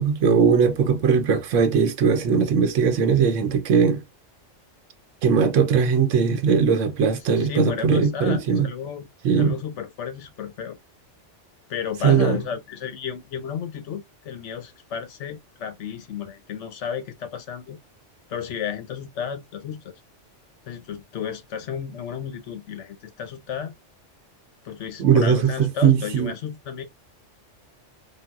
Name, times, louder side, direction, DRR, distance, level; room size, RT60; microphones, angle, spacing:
voice 1, 0.0-4.0 5.2-8.7 9.2-9.5 12.0-12.4 25.0-26.3, right 6 dB, 90° right, 1.0 m, -19 dB
voice 2, 7.3-9.1 9.3-10.8 11.7-17.8 18.3-19.9 20.6-23.7 24.6-26.8, left 8 dB, 75° left, 1.0 m, -32 dB
3.9 x 2.1 x 2.3 m
omnidirectional pair, 1.3 m